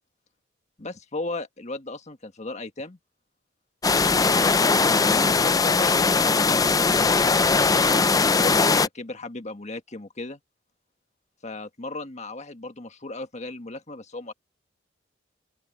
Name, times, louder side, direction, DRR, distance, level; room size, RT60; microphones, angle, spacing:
voice 1, 0.8-3.0 5.1-5.9 7.9-8.0 8.3-10.4 11.4-14.3, left 2 dB, 35° left, 1.6 m, -36 dB
sound 1, 3.8-8.9, left 4 dB, 20° left, 0.5 m, -20 dB
open air
head